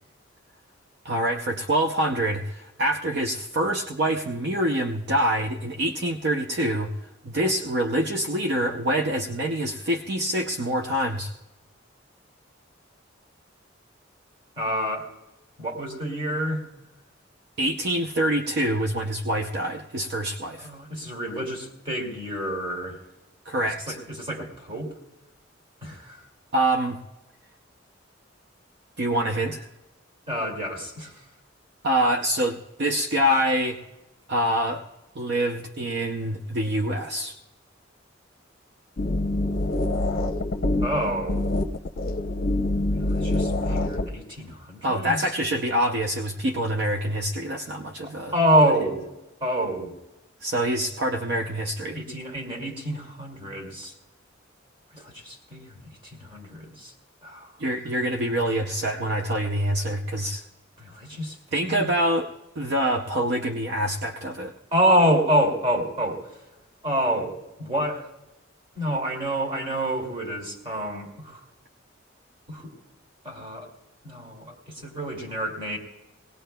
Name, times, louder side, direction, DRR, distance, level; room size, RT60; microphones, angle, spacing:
voice 1, 1.0-6.9 7.2-11.3 17.6-20.7 23.5-24.0 26.5-27.0 29.0-29.6 31.8-33.8 34.3-34.8 35.2-37.3 44.8-48.4 50.4-52.0 57.6-60.4 61.5-62.3 62.6-64.5, right 1 dB, 60° right, 4 dB, 0.6 m, -25 dB
voice 2, 14.6-15.1 15.6-16.6 20.6-23.0 23.9-24.9 25.8-26.2 30.3-31.2 40.8-41.4 43.2-45.2 48.0-49.1 49.4-49.9 51.9-53.9 54.9-56.9 57.2-57.5 60.8-61.4 61.6-61.9 64.7-66.3 66.8-68.1 68.8-71.4 72.5-72.7 73.2-73.7 74.0-75.8, right 1 dB, 30° right, 0 dB, 2.4 m, -27 dB
sound 1, 39.0-44.1, left 1 dB, 50° left, 0.8 m, -25 dB
20.5 x 18.5 x 2.2 m, 1.0 s
head